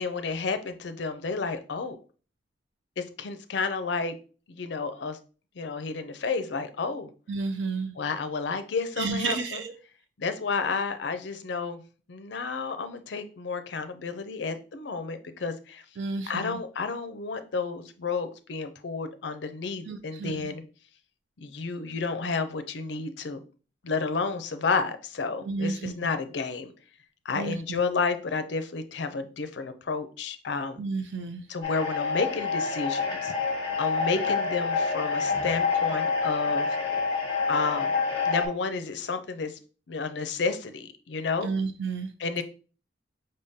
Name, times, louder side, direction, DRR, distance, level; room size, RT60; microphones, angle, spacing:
voice 1, 0.0-2.0 3.0-4.2 4.5-5.2 5.6-7.1 8.0-9.6 10.2-11.8 12.1-15.8 16.2-20.6 21.4-23.4 23.8-26.7 27.2-30.8 31.5-33.4 33.8-36.8 37.5-38.0 38.3-39.6 39.9-41.5 42.2-42.4, left 4 dB, 65° left, 10 dB, 0.5 m, -31 dB
voice 2, 7.3-7.9 9.0-9.7 16.0-16.6 19.9-20.5 25.4-25.9 27.3-27.8 30.8-31.4 41.4-42.1, right 4 dB, 70° right, 7 dB, 0.4 m, -31 dB
sound 1, 31.6-38.5, left 5 dB, 25° left, 1.2 m, -27 dB
5.3 x 3.6 x 2.7 m, 0.37 s
head